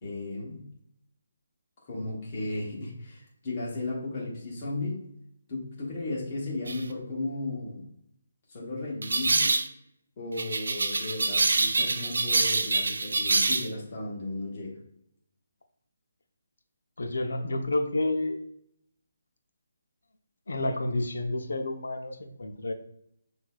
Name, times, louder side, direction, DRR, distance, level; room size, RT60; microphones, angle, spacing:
voice 1, 0.0-0.6 1.8-5.0 5.5-7.9 8.5-9.6 10.2-14.8, left 2 dB, 25° left, -3 dB, 1.0 m, -35 dB
sound 1, 6.7-6.8 9.0-9.7 10.4-13.7, right 3 dB, 70° right, 0.5 m, -26 dB
voice 2, 17.0-18.4 20.5-22.7, left 2 dB, 75° left, 4 dB, 0.7 m, -30 dB
6.2 x 2.7 x 2.3 m, 0.73 s
hypercardioid pair, 175°, 0 cm